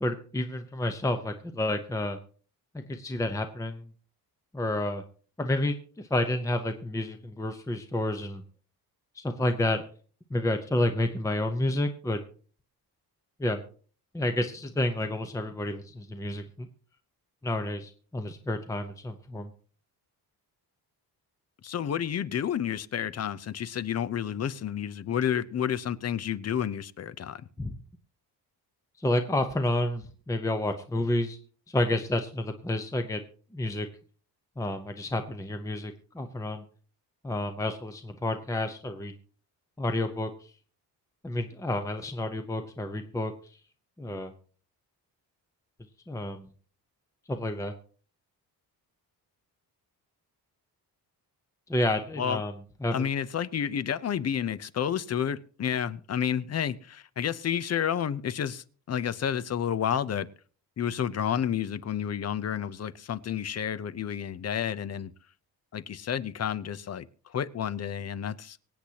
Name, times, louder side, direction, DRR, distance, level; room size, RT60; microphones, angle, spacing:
voice 1, 0.0-2.2 2.9-3.8 4.5-5.0 5.4-8.4 9.1-9.8 10.3-12.2 13.4-13.6 14.1-16.7 17.4-19.5 27.6-27.8 29.0-31.4 31.7-33.2 33.5-33.9 34.6-36.6 37.2-39.1 39.8-40.3 41.2-43.3 44.0-44.3 46.1-46.4 47.3-47.7 51.7-52.5 52.8-53.1, left 1 dB, 10° left, 0.8 m, -30 dB
voice 2, 21.6-27.4 52.2-52.4 52.9-60.3 60.8-65.1 65.7-68.6, left 9 dB, 40° left, 0.7 m, -30 dB
24.5 x 8.5 x 2.9 m
cardioid pair, 135°, 38 cm